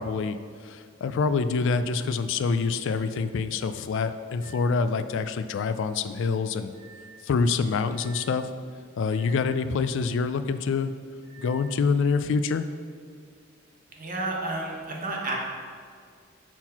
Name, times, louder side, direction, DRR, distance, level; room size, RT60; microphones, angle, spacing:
voice 1, 0.0-6.7 7.2-8.5 9.0-10.9 11.4-12.7, left 4 dB, 65° left, 11 dB, 0.3 m, -26 dB
sound 1, 4.4-4.8 6.7-7.3 7.9-8.4 9.1-9.6 11.2-11.7, right 5 dB, 10° left, 1.0 m, -50 dB
voice 2, 13.9-15.4, right 2 dB, 45° right, -1 dB, 1.2 m, -31 dB
5.9 x 4.4 x 5.7 m, 2.1 s
head